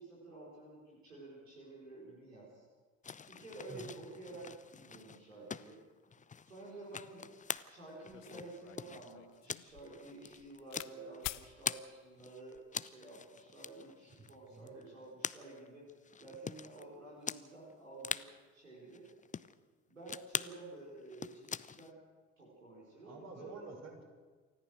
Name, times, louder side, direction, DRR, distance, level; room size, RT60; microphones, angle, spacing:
voice 1, 0.0-2.6 3.3-5.8 6.4-7.3 7.7-15.9 16.2-19.1 19.9-22.0 22.4-23.7, right 2 dB, 90° right, -5 dB, 4.4 m, -51 dB
sound 1, 3.0-11.8 12.2-16.8 17.3-17.4 17.7-17.8 18.0-18.3 18.9-19.5 20.1-20.5 21.0-21.9, left 6 dB, 20° left, 0.7 m, -44 dB
sound 2, 7.6-7.7 8.1-10.9 11.2-11.5 12.3-12.7, left 19 dB, 70° left, 0.8 m, -48 dB
voice 2, 14.1-14.7 23.0-24.0, right 3 dB, 45° right, 2 dB, 5.8 m, -50 dB
28.5 x 14.0 x 6.4 m, 1.4 s
figure-of-eight pair, 50°, 37 cm